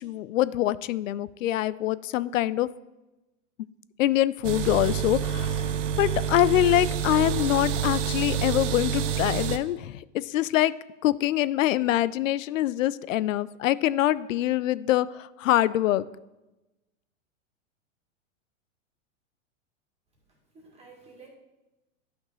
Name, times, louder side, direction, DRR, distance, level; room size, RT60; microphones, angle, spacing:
voice 1, 0.0-2.7 4.0-5.7 6.0-10.0 10.3-10.7 11.0-16.0, left 14 dB, 80° left, 18 dB, 0.5 m, -24 dB
sound 1, 4.4-9.6, right 8 dB, 70° right, 0.8 m, -28 dB
voice 2, 20.3-21.3, right 4 dB, 15° right, -2 dB, 2.1 m, -52 dB
12.0 x 5.9 x 3.1 m, 1.0 s
hypercardioid pair, 135°, 38 cm